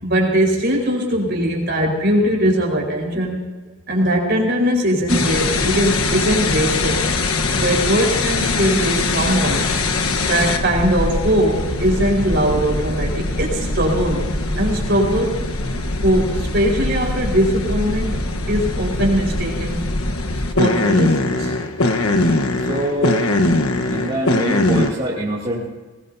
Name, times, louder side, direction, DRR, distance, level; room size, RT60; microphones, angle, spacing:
voice 1, 0.0-3.4 3.9-7.0 7.5-9.7 10.3-14.2 14.5-15.5 16.0-18.2 18.5-19.9 20.6-21.5 22.0-22.2, equal, 50° right, -1 dB, 4.6 m, -20 dB
sound 1, 5.1-24.9, left 2 dB, 90° left, 1.2 m, -21 dB
voice 2, 22.7-23.3 23.9-25.7, right 1 dB, 30° right, -7 dB, 2.7 m, -24 dB
21.5 x 20.0 x 2.8 m, 1.2 s
head